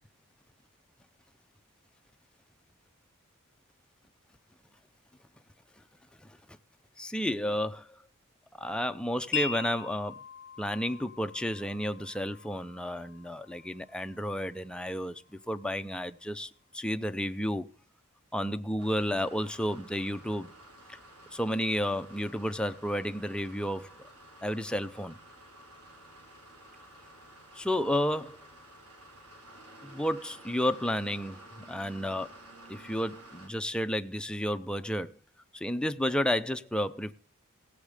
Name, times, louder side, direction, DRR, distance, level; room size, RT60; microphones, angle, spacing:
voice 1, 7.0-7.9 8.6-10.2 10.6-17.7 18.3-20.5 21.3-23.9 24.4-25.2 27.6-28.4 29.8-31.4 31.7-32.3 32.7-35.1 35.5-37.1, equal, 5° left, 0.5 m, -31 dB
Wind chime, 9.3-15.4, left 5 dB, 55° left, 0.6 m, -42 dB
sound 1, 18.8-33.5, right 1 dB, 85° right, 3.7 m, -52 dB
18.0 x 7.1 x 5.0 m
head